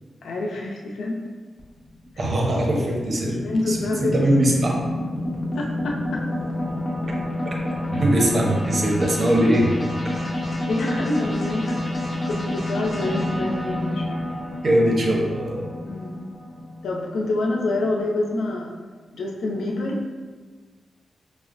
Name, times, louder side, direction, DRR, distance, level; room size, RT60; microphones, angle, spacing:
voice 1, 0.2-1.2 3.2-4.2 5.5-6.2 10.6-11.8 12.3-14.2 15.8-16.2 16.8-18.7 19.1-20.1, left 2 dB, 90° left, 0 dB, 0.5 m, -27 dB
sound 1, 1.6-18.0, left 1 dB, 35° left, 0.9 m, -29 dB
voice 2, 2.2-3.4 3.7-4.8 7.4-7.5 7.9-9.7 10.1-10.3 14.6-15.6, right 1 dB, 55° right, -1 dB, 0.7 m, -21 dB
5.4 x 2.0 x 2.5 m, 1.4 s
cardioid pair, 65°, 0 cm